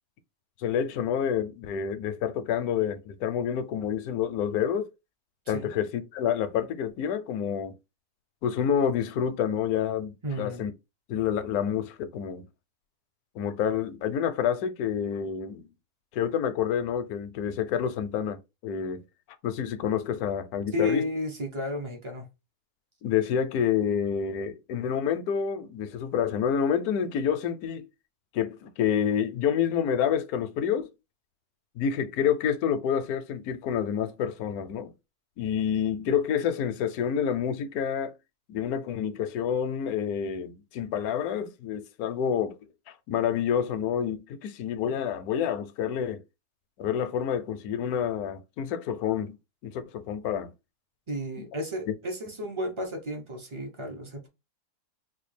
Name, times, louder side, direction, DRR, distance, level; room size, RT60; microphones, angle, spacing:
voice 1, 0.6-4.8 5.5-7.7 8.4-10.7 11.1-12.5 13.3-15.7 16.1-19.0 19.4-21.0 23.0-27.9 28.3-30.9 31.8-34.9 35.4-38.1 38.5-42.5 42.9-46.2 46.8-49.4 49.6-50.5 51.4-51.5, left 8 dB, 75° left, 1.0 m, -28 dB
voice 2, 10.2-10.6 20.7-22.3 51.1-54.3, left 1 dB, 40° right, 0.4 m, -32 dB
4.0 x 2.3 x 3.2 m
omnidirectional pair, 1.7 m